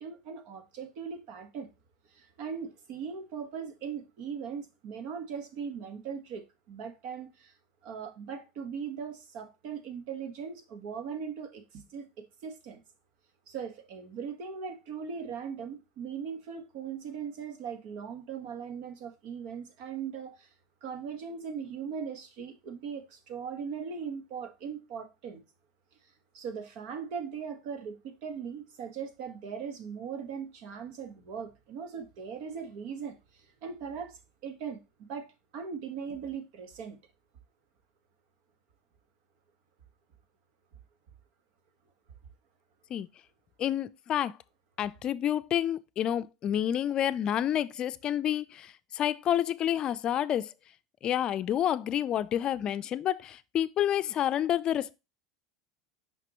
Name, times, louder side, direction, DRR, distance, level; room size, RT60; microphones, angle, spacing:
voice 1, 0.0-1.7 2.1-7.5 7.8-12.8 13.5-20.5 20.8-25.4 26.3-34.8 35.1-37.0, right 6 dB, 60° right, 1.5 m, -39 dB
voice 2, 43.6-44.3 44.8-50.5 51.0-55.0, left 10 dB, 40° left, 0.5 m, -29 dB
5.9 x 5.3 x 3.0 m
hypercardioid pair, 100°, 2 cm